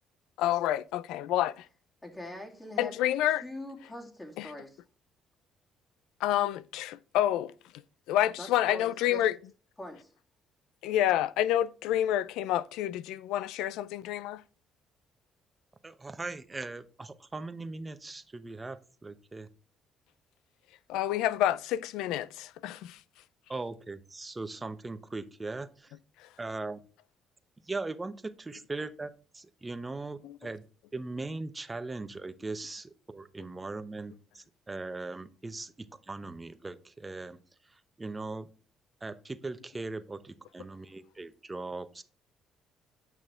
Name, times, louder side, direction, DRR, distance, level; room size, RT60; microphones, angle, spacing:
voice 1, 0.4-1.5 2.8-3.4 4.4-4.5 6.2-7.5 8.1-9.3 10.8-14.4 20.9-23.0 26.2-26.3 30.2-30.4, left 12 dB, 85° left, 0.4 m, -28 dB
voice 2, 2.0-3.0 3.4-4.8 8.4-9.2 9.8-10.1, left 1 dB, 20° left, 2.5 m, -43 dB
voice 3, 15.8-19.5 23.5-25.9 26.4-26.8 27.7-30.6 30.9-37.4 37.7-38.5 39.0-42.0, right 3 dB, 20° right, 0.8 m, -39 dB
8.9 x 6.1 x 3.6 m
cardioid pair, 85°, 0 cm